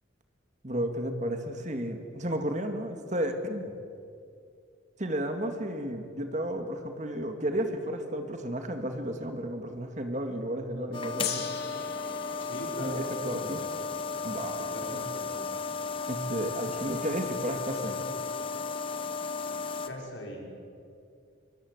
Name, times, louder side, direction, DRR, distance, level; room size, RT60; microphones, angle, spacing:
voice 1, 0.6-3.8 5.0-11.5 12.8-13.6 14.2-15.0 16.1-18.1, right 1 dB, 35° right, 5 dB, 2.2 m, -33 dB
sound 1, 10.9-19.9, left 4 dB, 25° left, 1.2 m, -34 dB
Gong, 11.2-15.9, left 9 dB, 50° left, 3.1 m, -41 dB
voice 2, 12.4-13.7 14.6-15.4 19.9-20.5, equal, 70° left, 0 dB, 5.9 m, -40 dB
27.0 x 24.5 x 8.2 m, 2.4 s
head